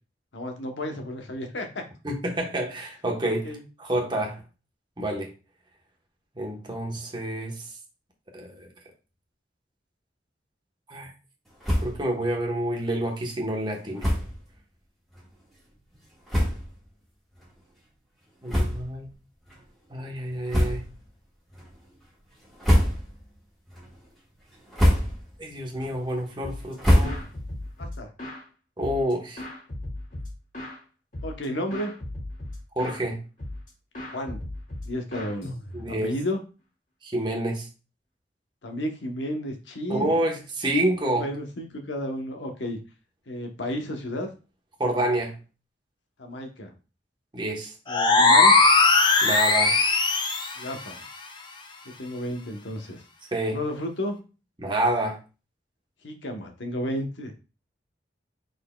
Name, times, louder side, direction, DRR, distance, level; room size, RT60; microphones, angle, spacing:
voice 1, 0.3-1.8 3.2-3.6 27.8-28.1 31.2-31.9 34.1-34.4 34.8-35.5 35.9-36.4 38.6-40.1 41.2-42.8 43.3-44.3 46.2-46.7 47.9-48.6 50.6-51.0 52.0-53.0 53.5-54.2 56.0-57.3, left 1 dB, 90° left, 4 dB, 1.0 m, -32 dB
voice 2, 2.0-3.5 3.8-4.4 5.0-5.3 6.4-7.6 8.3-8.7 10.9-11.1 11.8-14.0 18.4-19.1 19.9-20.8 25.4-27.2 28.8-29.4 32.8-33.2 35.7-36.1 37.0-37.7 39.9-41.3 44.8-45.3 47.3-47.7 49.2-49.7 53.3-53.6 54.6-55.2, right 1 dB, 25° right, 0 dB, 1.1 m, -28 dB
sound 1, 11.6-12.1 12.4-12.5 12.8-13.0 14.0-14.4 15.1-15.2 15.9-16.0 16.3-16.8 17.4-17.5 18.4-19.1 19.5-19.6 20.5-21.1 21.5-21.9 22.4-23.3 23.7-24.1 24.5-25.4 25.7-27.6, equal, ahead, 1.4 m, -25 dB
sound 2, 26.4-26.7 27.0-28.4 28.8-30.8 31.1-31.5 31.7-33.0 33.4-33.7 33.9-36.0, left 1 dB, 45° left, 1.9 m, -37 dB
sound 3, 47.9-50.6, left 3 dB, 25° left, 0.5 m, -18 dB
5.1 x 4.2 x 2.3 m, 0.33 s
head